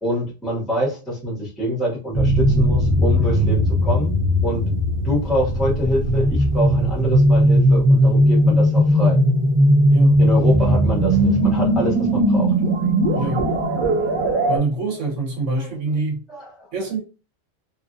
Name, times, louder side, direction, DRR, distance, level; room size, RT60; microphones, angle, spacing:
voice 1, 0.0-4.1 4.4-4.7 5.0-9.2 10.2-12.6 14.0-14.1 15.6-15.7 16.3-16.7, equal, ahead, 1.0 m, -25 dB
sound 1, 2.1-14.6, equal, 30° right, 0.7 m, -18 dB
voice 2, 9.9-10.2 13.1-13.4 14.5-16.2 16.7-17.0, right 3 dB, 85° right, 1.4 m, -25 dB
2.9 x 2.5 x 2.5 m
omnidirectional pair, 1.2 m